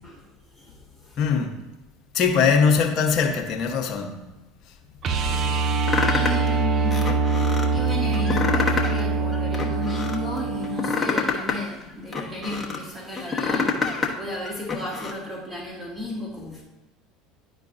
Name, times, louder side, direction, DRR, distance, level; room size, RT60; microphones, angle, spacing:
voice 1, 0.5-1.2 6.0-7.1 7.7-16.6, left 1 dB, 10° right, 1.9 m, -33 dB
voice 2, 1.2-1.5 2.1-4.2, left 6 dB, 50° left, 1.1 m, -21 dB
sound 1, 5.0-11.0 13.5-13.6, right 4 dB, 45° right, 0.6 m, -24 dB
sound 2, 5.9-6.5 6.9-7.7 8.1-9.0 9.3-10.2 10.6-12.8 13.2-14.1 14.4-15.1, left 5 dB, 15° left, 1.2 m, -26 dB
11.0 x 4.5 x 2.7 m
hypercardioid pair, 85°, 0 cm